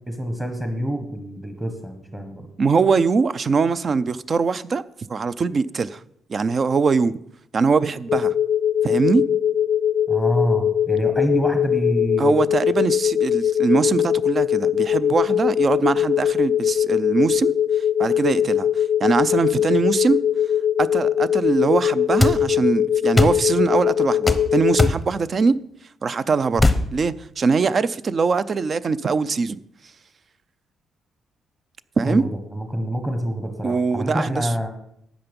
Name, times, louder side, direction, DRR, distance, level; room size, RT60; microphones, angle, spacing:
voice 1, 0.1-2.5 10.1-12.4 32.0-34.7, equal, 10° right, 1.3 m, -26 dB
voice 2, 2.6-4.8 5.1-6.0 6.3-7.2 7.5-8.3 8.8-9.2 12.2-20.2 20.8-25.5 26.0-29.6 32.0-32.2 33.6-34.5, right 4 dB, 35° right, 0.5 m, -22 dB
sound 1, 8.1-24.9, left 9 dB, 55° left, 0.5 m, -21 dB
sound 2, 22.2-22.4 23.2-23.4 24.3-24.4 24.8-25.0 26.6-26.8, left 2 dB, 10° left, 0.8 m, -17 dB
12.5 x 8.9 x 5.3 m
cardioid pair, 150°, 0 cm